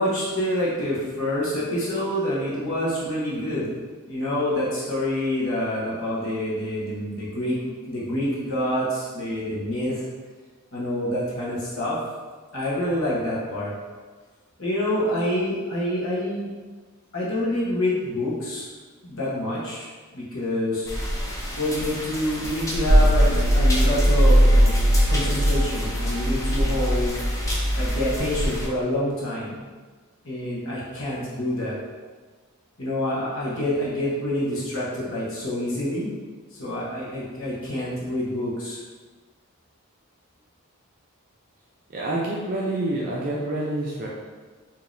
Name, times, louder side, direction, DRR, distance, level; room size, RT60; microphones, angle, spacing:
voice 1, 0.0-3.7 4.1-10.0 10.7-12.0 12.5-13.7 14.6-16.5 17.1-18.7 19.0-20.9 21.6-24.7 25.1-27.2 27.7-29.6 30.2-31.8 32.8-36.2 36.5-38.8, left 1 dB, 60° left, -7 dB, 1.1 m, -27 dB
sound 1, 20.9-28.7, equal, 15° left, 0.5 m, -29 dB
sound 2, 22.9-28.3, equal, 85° left, 0.8 m, -19 dB
voice 2, 41.9-44.1, right 1 dB, 40° right, -5 dB, 0.5 m, -27 dB
4.9 x 2.8 x 2.6 m, 1.4 s
head